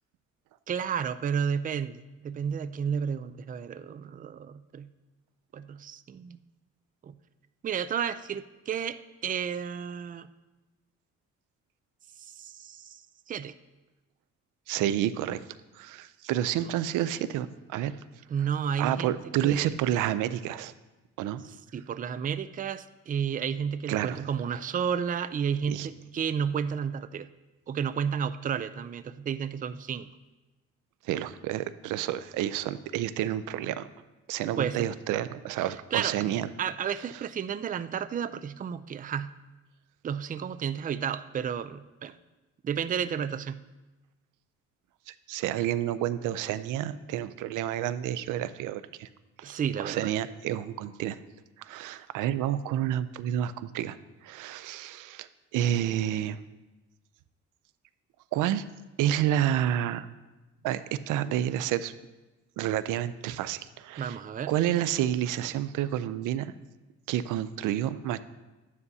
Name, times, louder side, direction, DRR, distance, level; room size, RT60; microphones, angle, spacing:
voice 1, 0.7-4.9 5.5-6.4 7.0-7.1 7.6-10.3 12.2-13.0 13.3-13.5 18.3-19.1 19.4-19.7 21.7-27.3 27.7-30.1 34.6-34.9 35.9-36.3 36.6-39.3 40.0-42.2 42.6-43.6 49.4-50.1 64.0-64.5, right 7 dB, 30° right, 13 dB, 0.4 m, -32 dB
voice 2, 14.7-15.4 15.7-17.9 18.4-18.5 18.8-20.7 21.2-21.4 23.9-24.2 25.7-25.9 31.0-33.9 34.3-36.5 45.1-49.1 49.4-51.2 51.6-54.0 54.2-56.4 58.3-58.6 59.0-60.1 60.6-61.9 62.6-64.2 64.5-66.5 67.1-68.2, right 11 dB, 90° right, 14 dB, 0.5 m, -29 dB
12.5 x 9.6 x 2.7 m, 1.1 s
cardioid pair, 90°, 30 cm